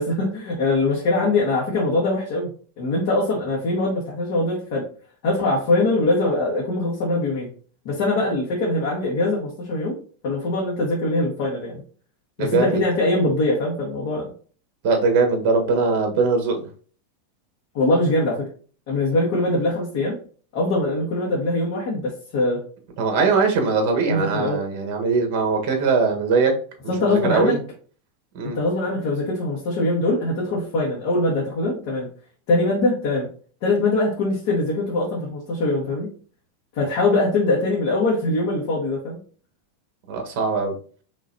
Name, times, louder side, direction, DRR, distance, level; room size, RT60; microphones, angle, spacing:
voice 1, 0.0-2.5 2.8-4.8 5.2-7.5 7.8-10.0 10.2-11.8 12.4-14.3 17.7-18.5 18.9-20.2 20.5-22.6 24.1-24.6 26.9-27.6 28.5-32.1 32.5-33.3 33.6-36.1 36.7-39.2, left 2 dB, 55° left, -4 dB, 1.6 m, -22 dB
voice 2, 12.4-12.8 14.8-16.7 23.0-26.5 27.0-27.6 28.3-28.6 40.1-40.7, right 4 dB, 50° right, 4 dB, 1.4 m, -21 dB
5.3 x 3.1 x 2.8 m, 0.42 s
supercardioid pair, 150°, 0 cm